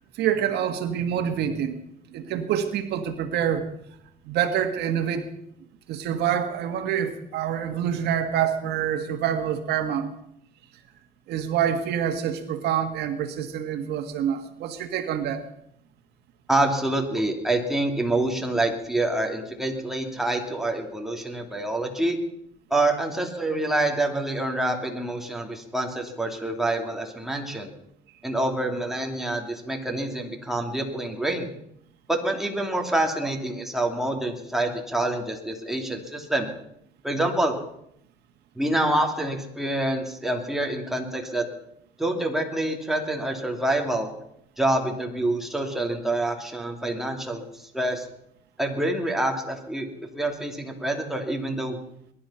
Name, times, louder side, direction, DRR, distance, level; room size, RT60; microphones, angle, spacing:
voice 1, 0.2-1.8 2.1-3.7 4.3-5.3 5.9-10.1 11.3-15.4, right 9 dB, 75° right, 7 dB, 1.7 m, -26 dB
voice 2, 16.5-22.2 22.7-27.7 28.2-31.5 32.1-36.5 37.0-37.5 38.5-41.5 42.0-44.1 44.6-48.1 48.6-51.8, right 1 dB, ahead, 2 dB, 2.8 m, -26 dB
21.5 x 11.5 x 5.7 m, 0.74 s
cardioid pair, 110°, 17 cm